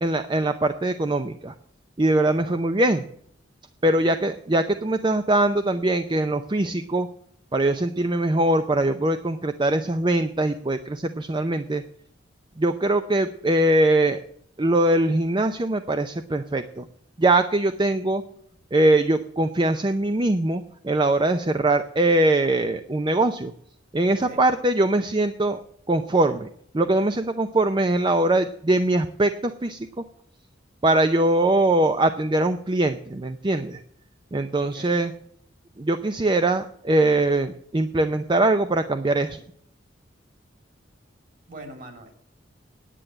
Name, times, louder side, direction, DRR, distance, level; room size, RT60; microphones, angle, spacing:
voice 1, 0.0-1.5 2.0-3.0 3.8-7.1 7.5-11.8 12.6-14.2 14.6-16.8 17.2-18.2 18.7-23.5 23.9-25.6 25.9-26.5 26.7-29.9 30.8-33.8 34.3-35.1 35.8-39.4, right 2 dB, 25° right, 9 dB, 0.5 m, -22 dB
voice 2, 2.2-2.6 3.9-4.1 24.2-24.4 34.7-35.0 41.5-42.1, right 1 dB, 45° right, 5 dB, 3.1 m, -42 dB
10.0 x 8.7 x 7.8 m, 0.68 s
head